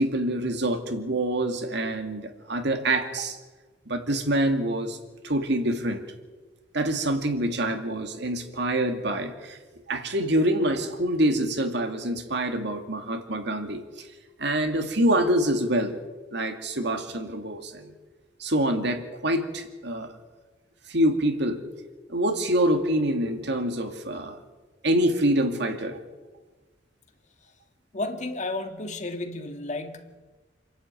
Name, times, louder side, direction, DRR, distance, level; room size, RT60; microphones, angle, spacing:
voice 1, 0.0-3.4 3.9-5.0 5.2-6.0 6.7-9.6 9.9-14.1 14.4-16.0 16.3-17.9 18.4-20.1 20.9-21.6 22.1-24.4 24.8-26.0, right 1 dB, 65° right, 6 dB, 2.2 m, -26 dB
voice 2, 27.9-30.2, left 2 dB, 40° left, 6 dB, 1.8 m, -32 dB
27.0 x 11.5 x 9.1 m, 1.3 s
head